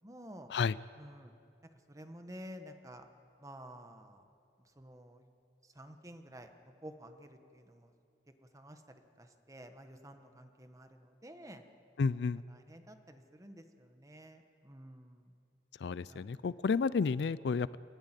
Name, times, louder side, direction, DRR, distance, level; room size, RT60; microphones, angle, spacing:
voice 1, 0.0-0.5 1.0-1.3 1.9-3.1 3.4-4.2 4.8-5.2 5.7-6.5 6.8-7.9 8.5-8.8 9.2-11.6 12.2-15.3 16.1-16.4, equal, 20° right, 7 dB, 1.3 m, -51 dB
voice 2, 12.0-12.4 15.8-17.8, left 5 dB, 65° left, 18 dB, 0.4 m, -31 dB
30.0 x 10.5 x 9.1 m, 2.5 s
head